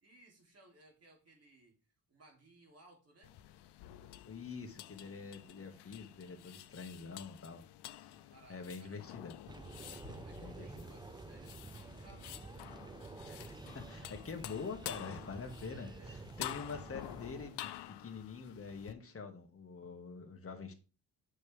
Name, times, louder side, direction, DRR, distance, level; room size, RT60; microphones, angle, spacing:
voice 1, 0.0-1.8 2.1-3.3 8.1-9.1 9.8-12.6 15.5-16.2, right 1 dB, 40° right, 3.2 m, -62 dB
sound 1, 3.2-18.9, left 13 dB, 80° left, 0.7 m, -50 dB
voice 2, 4.3-7.6 7.9-9.4 10.4-10.9 13.2-20.7, left 5 dB, 35° left, 1.8 m, -46 dB
sound 2, 9.5-17.5, right 3 dB, 15° right, 0.3 m, -50 dB
8.2 x 6.3 x 3.5 m
cardioid pair, 90°, 40 cm